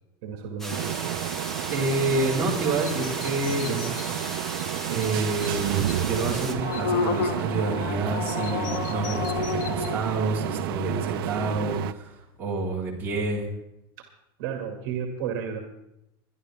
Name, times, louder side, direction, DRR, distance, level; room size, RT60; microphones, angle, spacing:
voice 1, 0.2-0.9 4.1-4.3 14.4-15.6, right 7 dB, 60° right, 4 dB, 2.2 m, -32 dB
sound 1, 0.6-6.5, right 1 dB, 5° left, 1.6 m, -36 dB
sound 2, 0.7-11.9, right 14 dB, 75° right, 0.6 m, -31 dB
voice 2, 1.7-4.3 4.9-13.5, right 2 dB, 15° right, -6 dB, 4.0 m, -28 dB
sound 3, 2.8-4.1 4.6-4.7 5.0-5.1 5.4-5.5 5.9-6.0 6.3-10.0, left 6 dB, 60° left, 1.3 m, -31 dB
23.5 x 11.0 x 3.6 m, 0.83 s
supercardioid pair, 165°, 12 cm